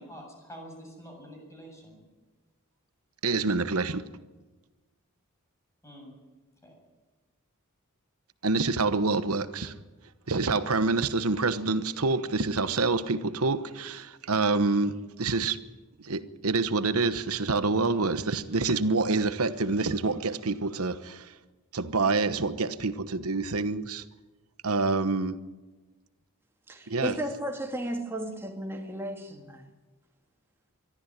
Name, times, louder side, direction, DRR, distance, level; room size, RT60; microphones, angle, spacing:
voice 1, 0.0-2.0 5.8-6.1 6.6-6.7, equal, 15° left, 7.8 m, -46 dB
voice 2, 3.2-4.0 8.4-9.8 10.3-15.6 16.0-21.3 21.7-24.0 24.6-25.4 26.9-27.1, right 3 dB, 80° right, 1.1 m, -27 dB
voice 3, 26.7-29.6, equal, 10° right, 2.2 m, -34 dB
23.0 x 13.5 x 9.9 m
head